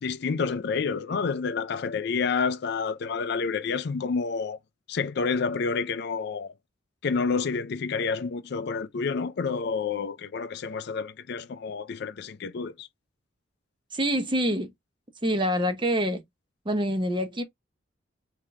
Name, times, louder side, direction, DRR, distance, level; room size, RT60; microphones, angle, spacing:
voice 1, 0.0-4.6 4.9-6.5 7.0-12.9, left 5 dB, 55° left, 0.4 m, -29 dB
voice 2, 13.9-14.7 15.2-16.2 16.6-17.4, equal, 25° right, 0.7 m, -26 dB
3.6 x 2.8 x 3.2 m
head